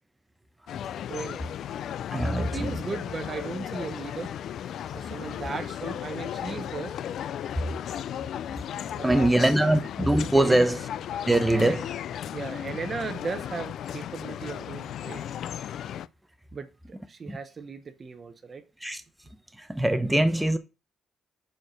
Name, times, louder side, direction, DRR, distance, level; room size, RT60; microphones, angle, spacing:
sound 1, 0.7-16.1, left 10 dB, 70° left, 0.3 m, -35 dB
voice 1, 1.1-1.4 2.3-4.3 4.9-7.0 8.1-8.3 8.8-9.4 10.4-10.7 11.5-11.8 12.3-15.2 16.5-18.6, right 5 dB, 40° right, 0.8 m, -37 dB
voice 2, 2.1-2.8 9.0-10.8 11.3-11.8 17.3-17.4 18.8-19.0 19.6-20.6, right 1 dB, 5° right, 0.9 m, -22 dB
5.2 x 4.6 x 6.2 m
cardioid pair, 90°, 0 cm